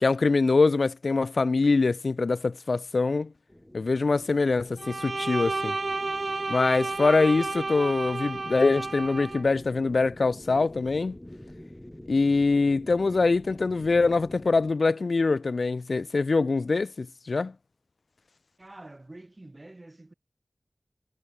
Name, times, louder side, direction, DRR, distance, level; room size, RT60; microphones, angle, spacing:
voice 1, 0.0-3.3 3.7-5.8 6.5-11.2 12.1-17.5, left 3 dB, 80° left, 0.3 m, -24 dB
sound 1, 3.5-14.7, left 1 dB, 10° left, 1.7 m, -47 dB
Bowed string instrument, 4.8-9.4, right 3 dB, 65° right, 0.7 m, -31 dB
voice 2, 18.6-20.1, right 2 dB, 35° right, 1.1 m, -47 dB
wide cardioid pair, 70°, 0 cm